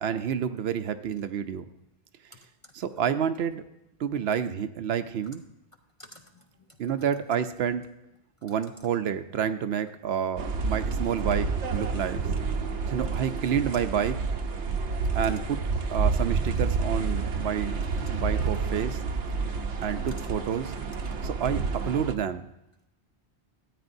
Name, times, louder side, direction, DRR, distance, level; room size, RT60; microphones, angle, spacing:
voice 1, 0.0-1.6 2.7-3.6 4.0-5.4 6.8-7.9 8.4-12.2 12.9-14.2 15.1-15.6 15.9-17.8 18.1-19.0 19.8-20.7 21.2-22.4, right 8 dB, 70° right, 11 dB, 0.8 m, -29 dB
voice 2, 6.0-6.8 11.0-11.4 13.0-13.2 14.9-15.3 17.9-18.1, left 1 dB, 40° left, 5 dB, 0.5 m, -52 dB
sound 1, 10.4-22.1, right 4 dB, 90° right, 1.1 m, -29 dB
13.5 x 8.6 x 2.6 m, 0.88 s
omnidirectional pair, 1.1 m